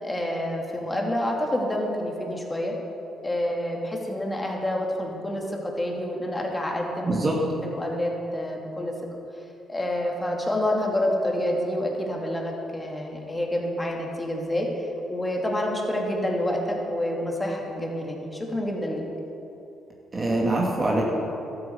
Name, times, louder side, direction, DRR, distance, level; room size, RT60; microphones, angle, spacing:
voice 1, 0.0-2.7 3.2-7.2 7.6-8.9 9.7-19.1, left 1 dB, 15° left, 0 dB, 2.6 m, -28 dB
voice 2, 7.1-7.4 20.1-21.0, right 2 dB, 30° right, -3 dB, 2.3 m, -23 dB
13.0 x 9.4 x 8.0 m, 2.9 s
cardioid pair, 90°, 0 cm